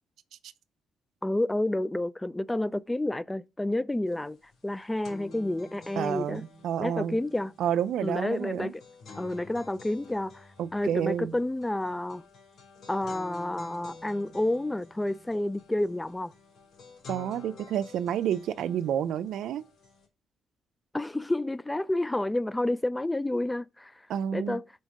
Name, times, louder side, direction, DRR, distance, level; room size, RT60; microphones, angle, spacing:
voice 1, 1.2-4.4 4.6-6.4 6.8-7.5 8.0-8.8 9.1-12.2 12.9-16.3 20.9-23.9 24.3-24.6, left 1 dB, 10° left, 0.3 m, -30 dB
sound 1, 4.1-4.2 4.5-20.1, left 3 dB, 65° left, 3.6 m, -50 dB
voice 2, 6.0-7.2 7.6-8.7 10.6-11.4 17.1-19.6 24.1-24.6, right 9 dB, 75° right, 0.5 m, -30 dB
5.4 x 4.5 x 6.2 m
cardioid pair, 90°, 0 cm